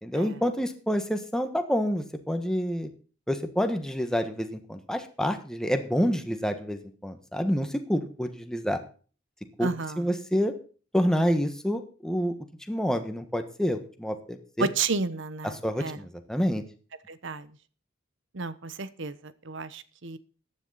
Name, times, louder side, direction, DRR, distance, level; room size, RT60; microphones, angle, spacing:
voice 1, 0.0-2.9 3.3-8.8 9.6-9.7 10.0-10.5 10.9-12.3 12.7-14.7 15.4-16.6, equal, 5° left, 7 dB, 1.4 m, -28 dB
voice 2, 9.6-10.0 14.6-16.0 17.1-17.5 18.3-19.1 19.5-20.2, right 4 dB, 65° right, 15 dB, 1.0 m, -31 dB
14.5 x 10.0 x 4.1 m, 0.38 s
head